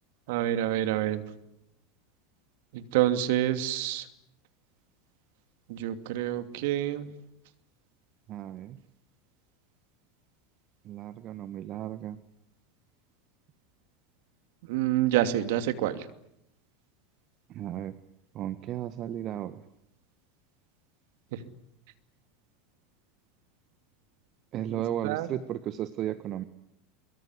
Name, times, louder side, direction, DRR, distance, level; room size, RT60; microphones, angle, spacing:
voice 1, 0.3-1.2 2.7-4.1 5.7-7.1 14.6-16.1 21.3-21.4 24.7-25.3, right 13 dB, 60° right, 9 dB, 2.7 m, -28 dB
voice 2, 8.3-8.8 10.8-12.2 17.5-17.9 18.3-19.6 24.5-26.4, right 11 dB, 45° right, 12 dB, 1.5 m, -34 dB
24.0 x 23.0 x 9.8 m, 0.79 s
hypercardioid pair, 80°, 0 cm